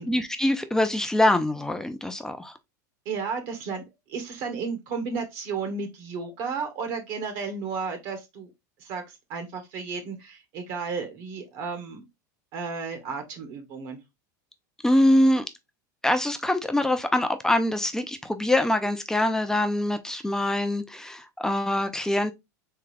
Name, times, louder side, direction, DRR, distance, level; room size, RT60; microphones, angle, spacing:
voice 1, 0.0-2.5 14.8-15.4 16.0-22.3, left 1 dB, 5° left, 0.5 m, -24 dB
voice 2, 3.0-8.5 8.8-12.0 12.5-14.0, right 5 dB, 55° right, 1.4 m, -33 dB
3.7 x 3.6 x 3.3 m
supercardioid pair, 130°, 10 cm